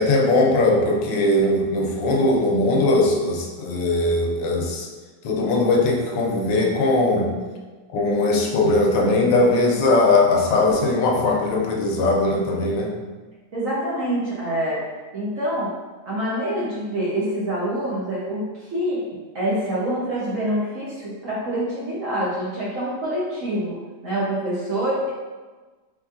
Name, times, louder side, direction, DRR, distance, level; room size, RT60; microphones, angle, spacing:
voice 1, 0.0-4.9 5.2-7.3 7.9-12.9, left 2 dB, 80° left, 0 dB, 1.3 m, -20 dB
voice 2, 13.5-14.8 15.1-15.7 16.1-18.4 18.7-19.0 19.3-23.8 24.0-25.1, right 1 dB, 60° right, -7 dB, 0.9 m, -25 dB
4.3 x 3.2 x 2.4 m, 1.3 s
omnidirectional pair, 2.0 m